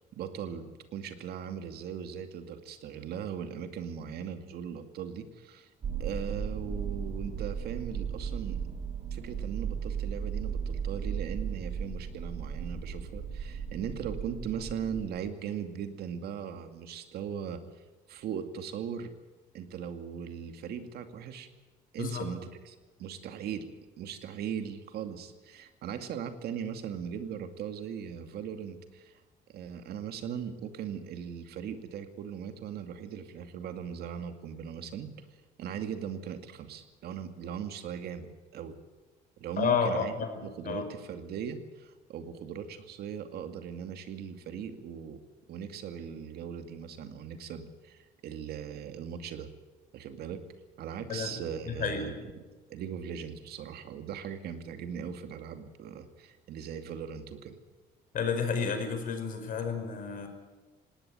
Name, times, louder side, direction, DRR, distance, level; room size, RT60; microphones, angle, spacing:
voice 1, 0.0-5.7 6.0-8.6 9.1-17.6 18.1-19.1 19.5-21.5 21.9-23.7 24.0-29.2 29.5-35.1 35.6-38.8 39.4-40.1 40.4-45.2 45.5-49.5 49.9-50.4 50.8-52.4 52.7-57.6, right 8 dB, 70° right, 7 dB, 2.4 m, -39 dB
sound 1, 5.8-15.0, right 7 dB, 45° right, 5.4 m, -36 dB
voice 2, 22.0-22.3 39.6-40.9 51.1-51.4 51.6-52.1 58.1-60.3, left 6 dB, 55° left, 7 dB, 5.2 m, -31 dB
18.5 x 18.5 x 9.4 m, 1.2 s
cardioid pair, 110°, 17 cm